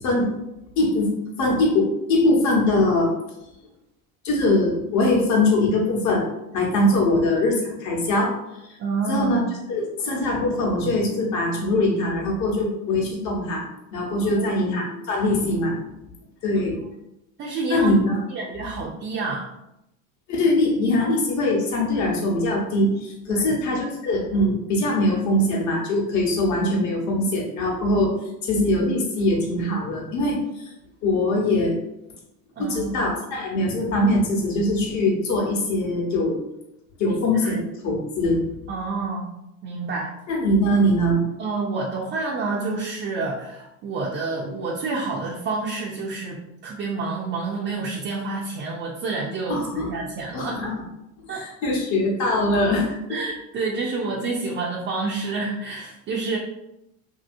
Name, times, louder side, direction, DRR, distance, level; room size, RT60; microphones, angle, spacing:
voice 1, 0.7-1.1 1.4-3.1 4.2-6.2 6.5-8.3 8.6-8.8 9.1-9.4 9.7-13.6 13.9-15.8 16.4-16.8 17.7-18.2 20.3-28.1 28.4-30.7 31.0-31.8 32.6-36.4 37.0-38.5 40.3-41.2 49.5-49.9 50.3-50.7 51.2-53.0, left 1 dB, 45° left, 0 dB, 1.0 m, -22 dB
voice 2, 8.8-9.5 14.2-14.6 17.4-17.9 18.3-19.5 23.3-23.5 32.6-33.0 37.1-37.6 38.7-39.3 39.6-40.1 41.4-50.6 51.3-51.7 53.1-56.4, right 3 dB, 30° right, -3 dB, 0.4 m, -29 dB
2.7 x 2.7 x 2.5 m, 0.87 s
supercardioid pair, 110°, 40 cm